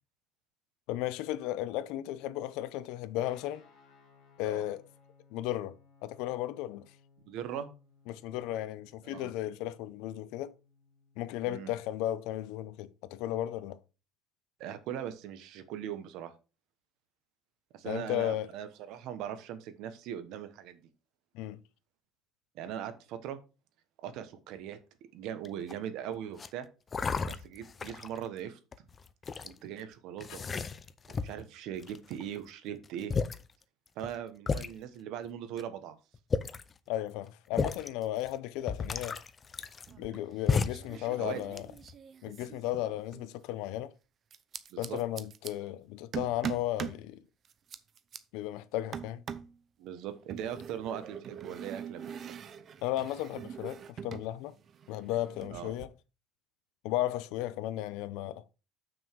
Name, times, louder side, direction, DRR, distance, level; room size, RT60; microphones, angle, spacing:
voice 1, 0.9-3.6 4.4-4.8 5.3-5.8 6.0-6.9 8.1-10.5 11.2-13.8 17.8-18.5 21.3-21.6 36.9-39.2 40.0-41.7 42.2-43.9 44.8-47.2 48.3-49.2 52.8-54.5 54.9-55.9 56.8-58.4, left 14 dB, 70° left, 0.6 m, -35 dB
Guitar, 3.2-11.3, left 5 dB, 45° left, 2.2 m, -63 dB
voice 2, 7.3-7.7 9.0-9.3 11.5-11.7 14.6-16.3 17.7-20.8 22.5-23.4 24.0-24.8 25.1-26.7 27.2-28.6 29.4-30.4 31.1-33.1 34.0-35.9 40.9-41.4 44.7-45.0 49.8-52.0 55.5-55.8, right 9 dB, 55° right, 1.1 m, -40 dB
sound 1, 25.4-25.8 26.3-26.5 26.9-28.2 28.7-29.5 30.2-31.4 31.8-32.4 32.8-32.9 33.1-33.4 34.0-34.1 34.5-34.7 35.6-35.7 36.1-36.7 37.5-37.9 38.3-38.4 38.7-40.2 40.5-40.9 41.4-41.9, left 5 dB, 20° left, 0.5 m, -33 dB
sound 2, 39.9-40.4 40.7-43.3 44.3-45.5 46.1-47.0 47.5-48.2 48.9-49.6 50.3-54.3 54.6-55.9, right 8 dB, 30° right, 0.6 m, -43 dB
7.1 x 6.2 x 4.6 m
cardioid pair, 180°, 0 cm